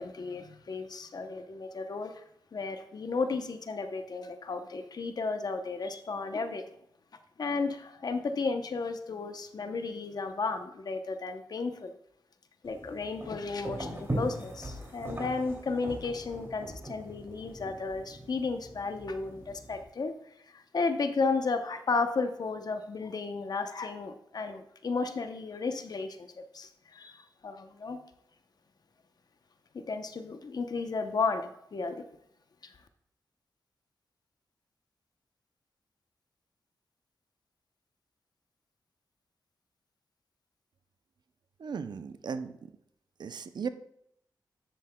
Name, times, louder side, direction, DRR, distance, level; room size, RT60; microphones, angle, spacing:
voice 1, 0.0-2.2 2.5-6.6 7.4-11.9 12.6-20.1 20.5-26.3 26.5-28.0 29.7-32.0 32.6-32.7, left 4 dB, 60° left, 8 dB, 0.7 m, -33 dB
sound 1, 12.6-19.8, right 1 dB, 30° right, 2.6 m, -40 dB
voice 2, 41.6-42.7 43.2-43.7, right 6 dB, 65° right, 11 dB, 0.5 m, -36 dB
9.9 x 7.6 x 2.2 m, 0.74 s
cardioid pair, 55°, 8 cm